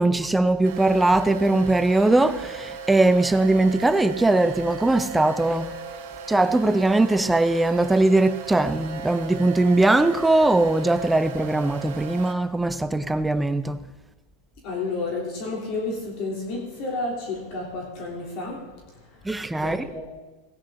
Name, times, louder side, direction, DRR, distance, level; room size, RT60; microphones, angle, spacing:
voice 1, 0.0-5.7 6.3-13.8 19.2-19.9, right 2 dB, 5° right, 0.5 m, -20 dB
sound 1, 0.6-12.3, right 6 dB, 65° right, 2.1 m, -37 dB
voice 2, 14.6-18.6 19.0-19.3 19.6-20.1, left 3 dB, 50° left, 3.4 m, -31 dB
16.5 x 10.0 x 3.9 m
supercardioid pair, 130°, 0 cm